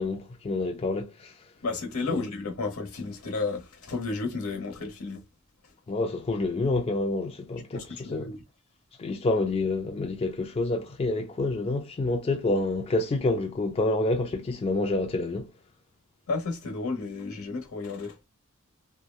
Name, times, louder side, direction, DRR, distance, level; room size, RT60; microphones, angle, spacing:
voice 1, 0.0-1.3 2.1-2.2 5.9-8.3 9.0-15.5, left 2 dB, 30° left, 0.3 m, -28 dB
voice 2, 1.6-5.2 7.7-8.4 16.3-18.2, left 3 dB, 85° left, 0.9 m, -32 dB
2.8 x 2.2 x 2.3 m
head